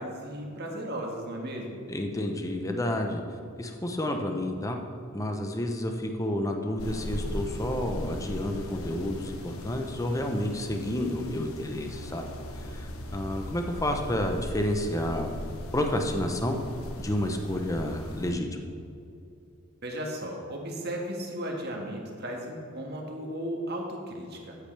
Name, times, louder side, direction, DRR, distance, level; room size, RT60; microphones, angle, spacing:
voice 1, 0.0-1.8 19.8-24.6, equal, 50° right, 0 dB, 1.7 m, -35 dB
voice 2, 1.9-3.2 3.6-4.8 5.1-12.3 12.5-15.3 15.7-16.6 17.0-18.5, left 1 dB, 15° left, 4 dB, 0.8 m, -30 dB
sound 1, 6.8-18.3, equal, 80° left, 1.0 m, -38 dB
14.0 x 8.3 x 3.4 m, 2.6 s
head